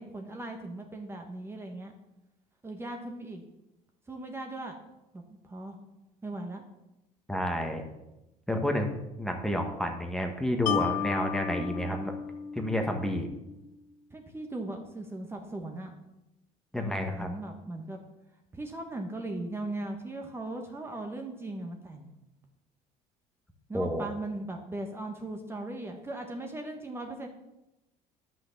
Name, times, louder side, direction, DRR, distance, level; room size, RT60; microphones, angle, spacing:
voice 1, 0.0-1.9 2.6-3.4 4.1-4.8 5.1-5.8 6.2-6.6 14.1-15.9 16.7-18.0 18.5-22.1 23.7-27.3, right 2 dB, 15° right, 3 dB, 1.2 m, -38 dB
voice 2, 7.3-7.8 8.5-8.9 9.2-12.1 12.5-13.3 16.7-17.3 23.7-24.1, left 1 dB, 5° left, 3 dB, 1.4 m, -30 dB
Mallet percussion, 10.7-13.9, left 8 dB, 65° left, 1.1 m, -34 dB
11.5 x 6.1 x 7.1 m, 0.95 s
cardioid pair, 135°, 16 cm